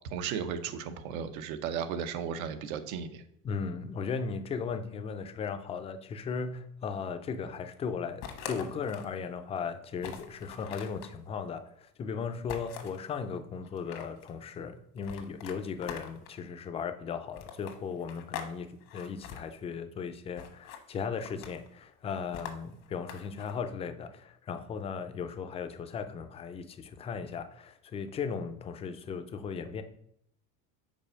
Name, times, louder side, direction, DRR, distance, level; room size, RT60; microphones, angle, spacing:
voice 1, 0.1-3.2, right 7 dB, 85° right, 9 dB, 0.9 m, -35 dB
voice 2, 3.4-29.8, left 6 dB, 15° left, 9 dB, 0.3 m, -37 dB
sound 1, 8.2-9.2 9.6-9.7 10.0-11.1 12.5-13.0 13.6-14.3 15.0-16.4 17.3-18.5 18.8-19.4 20.4-20.8 21.2-21.7 22.3-23.5, left 8 dB, 85° left, 1.3 m, -43 dB
5.5 x 4.3 x 6.2 m, 0.73 s
cardioid pair, 145°, 40 cm